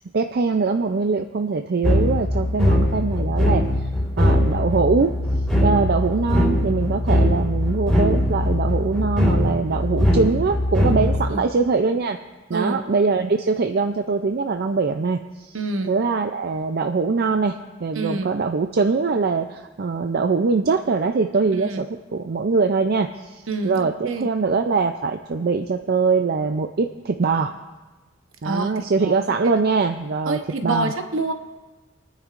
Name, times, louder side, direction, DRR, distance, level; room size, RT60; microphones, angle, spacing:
voice 1, 0.1-3.7 4.2-5.1 5.6-12.2 12.5-15.6 15.9-21.9 22.1-27.5 28.4-30.9, right 4 dB, 50° right, 6 dB, 0.5 m, -22 dB
sound 1, 1.8-11.3, left 1 dB, ahead, 3.0 m, -21 dB
voice 2, 12.5-12.8 15.5-15.9 17.9-18.3 21.5-21.8 23.5-24.3 28.4-29.2 29.4-29.6 30.3-31.3, right 2 dB, 65° right, 6 dB, 1.0 m, -27 dB
29.0 x 9.8 x 2.5 m, 1.2 s
head